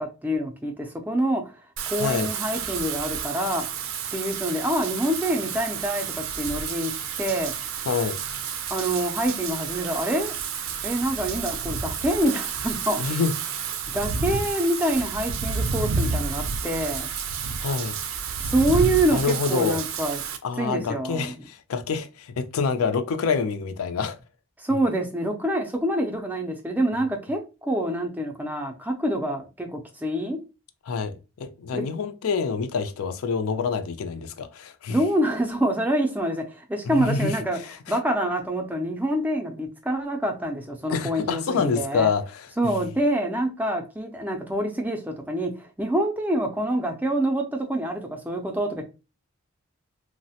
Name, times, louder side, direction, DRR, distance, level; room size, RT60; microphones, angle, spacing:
voice 1, 0.0-1.5 1.9-3.6 4.1-6.9 7.2-7.5 8.7-10.4 10.8-13.0 13.9-17.1 18.4-20.2 20.6-21.3 24.6-30.4 31.7-31.8 34.9-37.6 37.9-42.1 42.6-48.8, right 1 dB, 10° right, 0.4 m, -26 dB
Wind / Rain, 1.8-20.4, right 6 dB, 75° right, 0.4 m, -30 dB
voice 2, 2.0-2.3 7.9-8.2 13.0-13.3 17.6-18.0 19.1-19.8 20.4-24.2 30.9-35.0 36.8-37.4 37.9-38.0 40.9-42.7, left 5 dB, 80° left, 0.4 m, -27 dB
3.0 x 2.0 x 2.7 m
head